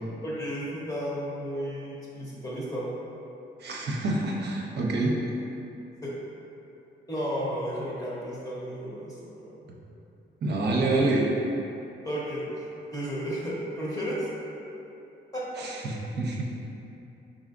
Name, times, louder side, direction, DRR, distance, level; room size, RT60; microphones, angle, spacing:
voice 1, 0.2-2.9 6.0-6.1 7.1-9.6 12.0-12.7 12.9-14.3 15.3-15.6, equal, 20° left, -7 dB, 1.0 m, -33 dB
voice 2, 3.6-5.2 10.4-11.3 15.6-16.4, right 2 dB, 60° right, -2 dB, 0.6 m, -27 dB
4.8 x 3.8 x 2.5 m, 2.9 s
cardioid pair, 120°, 20 cm